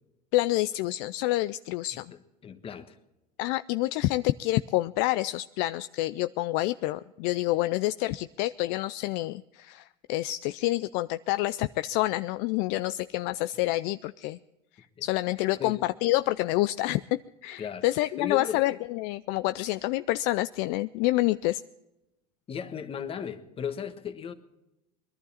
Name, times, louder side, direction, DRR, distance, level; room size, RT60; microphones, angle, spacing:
voice 1, 0.3-2.1 3.4-14.4 14.8-21.6, left 18 dB, 55° left, 0.4 m, -28 dB
voice 2, 1.9-3.0 15.6-15.8 17.6-17.9 18.2-18.6 22.5-24.3, left 7 dB, 30° left, 1.4 m, -36 dB
22.0 x 11.5 x 4.2 m
hypercardioid pair, 105°, 19 cm